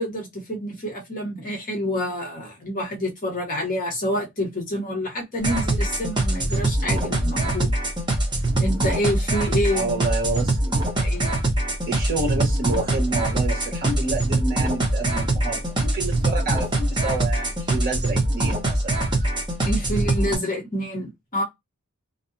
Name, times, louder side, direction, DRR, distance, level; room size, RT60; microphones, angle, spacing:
voice 1, 0.0-7.7 8.6-10.0 10.9-11.3 19.6-21.4, equal, 40° left, 0.9 m, -28 dB
sound 1, 5.4-20.4, right 1 dB, 20° right, 0.8 m, -23 dB
voice 2, 9.7-10.6 11.9-19.3, right 3 dB, 40° right, 1.3 m, -29 dB
2.6 x 2.2 x 2.6 m
head